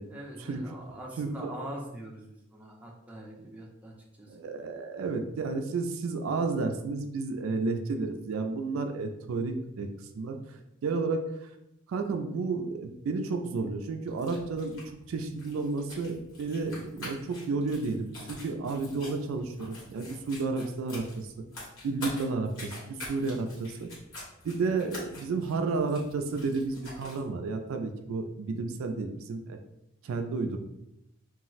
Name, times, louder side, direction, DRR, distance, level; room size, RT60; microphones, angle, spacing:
voice 1, 0.1-4.4 5.0-5.2, right 1 dB, 5° right, -2 dB, 0.4 m, -43 dB
voice 2, 1.2-1.5 4.3-9.9 10.1-11.5 11.9-14.8 15.1-21.4 21.8-23.9 24.4-29.6 30.0-30.6, right 3 dB, 70° right, 6 dB, 0.3 m, -32 dB
sound 1, 14.1-27.2, left 1 dB, 80° left, 1.2 m, -46 dB
2.4 x 2.0 x 3.9 m, 0.86 s
head